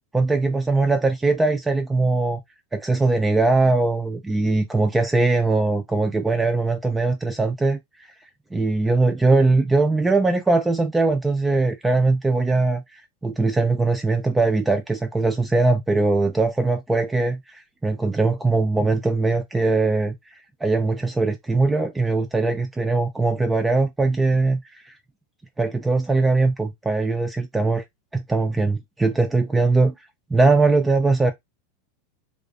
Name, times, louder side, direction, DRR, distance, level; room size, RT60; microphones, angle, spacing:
voice 1, 0.1-2.4 2.7-7.8 8.5-12.8 13.2-20.1 20.6-24.6 25.6-27.8 28.1-29.9 30.3-31.3, right 3 dB, 10° right, 0.3 m, -21 dB
2.3 x 2.3 x 2.4 m
supercardioid pair, 120°, 0 cm